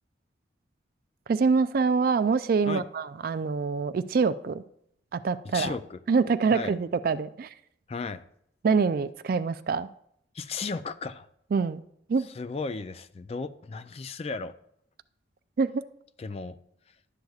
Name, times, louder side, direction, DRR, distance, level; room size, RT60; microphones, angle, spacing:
voice 1, 1.3-4.6 5.1-5.7 6.1-7.5 8.6-9.9 11.5-11.8 12.1-12.3 15.6-15.8, right 5 dB, 50° right, 13 dB, 0.3 m, -25 dB
voice 2, 5.5-6.0 6.5-6.7 7.9-8.2 10.3-11.3 12.4-14.5 16.2-16.6, left 4 dB, 35° left, 12 dB, 0.3 m, -34 dB
11.5 x 7.8 x 2.4 m, 0.71 s
head